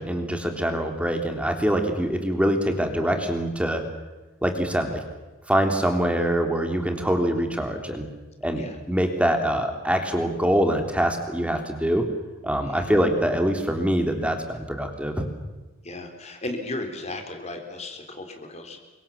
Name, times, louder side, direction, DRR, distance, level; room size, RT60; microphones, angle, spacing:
voice 1, 0.0-3.8 4.4-5.0 5.5-8.0 8.4-12.0 12.4-15.3, equal, 5° right, 4 dB, 3.4 m, -24 dB
voice 2, 12.6-12.9 15.8-18.8, left 2 dB, 35° left, 5 dB, 4.1 m, -35 dB
30.0 x 25.0 x 7.3 m, 1.2 s
head